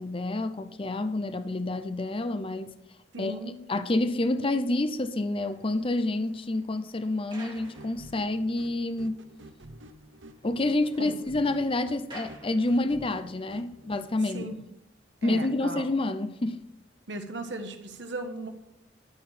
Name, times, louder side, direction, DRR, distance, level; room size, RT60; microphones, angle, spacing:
voice 1, 0.0-2.7 3.2-9.3 10.4-14.5 15.2-16.7, left 2 dB, 30° left, 0.6 m, -28 dB
voice 2, 3.1-3.6 11.0-11.1 14.3-14.6 15.2-15.8 17.1-18.5, right 2 dB, 65° right, 1.4 m, -36 dB
sound 1, 5.2-8.7 9.2-9.3 9.6-9.7 10.0-13.3, right 2 dB, 25° right, 2.3 m, -53 dB
sound 2, 7.5-14.1, right 1 dB, 90° right, 0.9 m, -49 dB
13.0 x 4.6 x 7.4 m
head